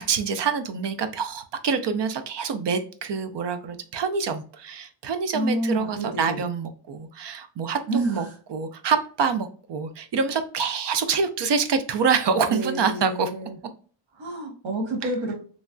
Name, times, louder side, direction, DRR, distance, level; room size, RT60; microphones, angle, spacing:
voice 1, 0.0-7.8 8.1-8.2 8.5-13.3, right 5 dB, 65° right, 9 dB, 0.5 m, -26 dB
voice 2, 5.3-6.4 7.9-8.3 12.5-13.6 14.2-15.3, right 1 dB, 80° right, -1 dB, 1.2 m, -29 dB
3.1 x 2.2 x 2.5 m, 0.41 s
wide cardioid pair, 145°, 46 cm